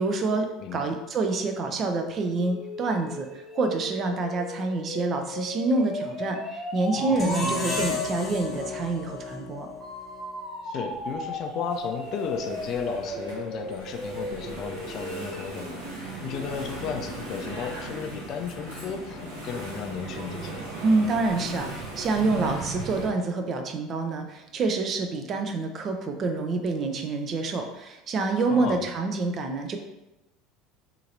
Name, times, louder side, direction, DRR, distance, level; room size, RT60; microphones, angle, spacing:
voice 1, 0.0-9.7 20.8-29.8, right 3 dB, 40° right, 5 dB, 0.4 m, -27 dB
sound 1, 2.4-7.6 9.8-15.7, equal, 5° right, 1.1 m, -36 dB
sound 2, 7.2-10.3, left 4 dB, 30° left, 0.9 m, -32 dB
voice 2, 10.6-20.6 28.5-28.8, left 7 dB, 50° left, 5 dB, 0.3 m, -34 dB
Engine / Mechanisms, 10.9-23.1, right 2 dB, 75° right, 0.8 m, -38 dB
2.8 x 2.8 x 2.6 m, 0.94 s
figure-of-eight pair, 70°, 0 cm